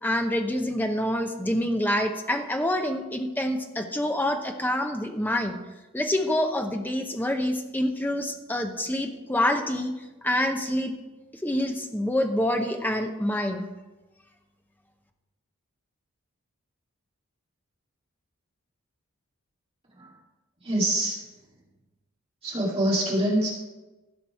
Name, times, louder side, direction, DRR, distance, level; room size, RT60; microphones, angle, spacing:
voice 1, 0.0-5.6 5.9-9.9 10.2-10.9 11.4-13.7, left 1 dB, 10° left, 5 dB, 0.7 m, -26 dB
voice 2, 20.6-21.2 22.4-23.5, right 1 dB, 25° right, -4 dB, 2.2 m, -25 dB
15.0 x 6.0 x 4.8 m, 1.1 s
head